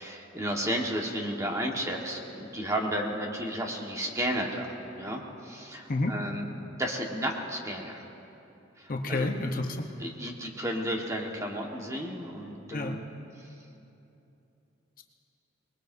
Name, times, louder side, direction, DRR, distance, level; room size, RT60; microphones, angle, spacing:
voice 1, 0.0-6.4 6.8-8.0 8.8-9.3 10.0-13.0, equal, 15° right, 0 dB, 1.5 m, -33 dB
voice 2, 8.9-9.9 12.7-13.0, left 2 dB, 45° left, 3 dB, 0.9 m, -29 dB
25.0 x 20.5 x 2.7 m, 2.8 s
head